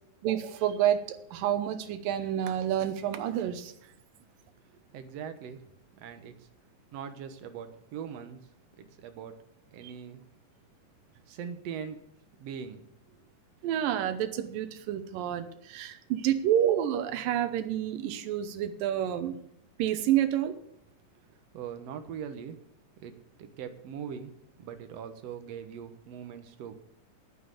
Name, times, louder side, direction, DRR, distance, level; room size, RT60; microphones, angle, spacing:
voice 1, 0.2-3.7 13.6-19.3 19.8-20.5, right 11 dB, 85° right, 9 dB, 2.6 m, -29 dB
voice 2, 4.7-5.6 6.0-6.5 6.9-8.5 8.8-9.3 9.7-10.3 11.3-12.1 12.4-12.8 21.5-22.6 23.0-23.1 23.4-24.3 24.6-26.8, right 8 dB, 60° right, 8 dB, 1.9 m, -41 dB
10.0 x 9.7 x 6.9 m, 0.75 s
omnidirectional pair, 3.9 m